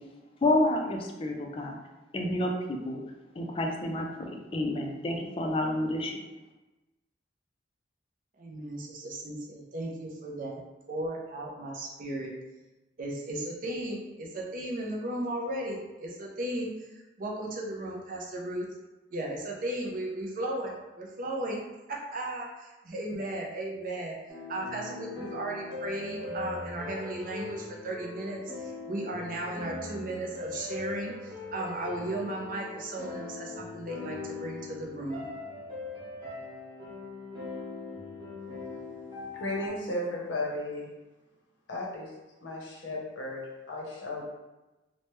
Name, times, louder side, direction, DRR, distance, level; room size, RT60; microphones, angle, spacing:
voice 1, 0.4-1.8 2.1-3.0 3.4-6.1, left 1 dB, 30° left, 2 dB, 0.3 m, -29 dB
voice 2, 8.4-10.6 10.9-12.3 13.0-18.7 19.1-21.6 21.9-24.2 24.5-35.2, right 1 dB, 45° right, -1 dB, 0.5 m, -35 dB
sound 1, 24.3-39.7, left 3 dB, 25° right, 1.1 m, -40 dB
voice 3, 39.3-40.9 41.7-42.1 42.4-44.2, left 1 dB, 75° left, -3 dB, 0.7 m, -34 dB
3.1 x 2.1 x 3.0 m, 1.1 s
head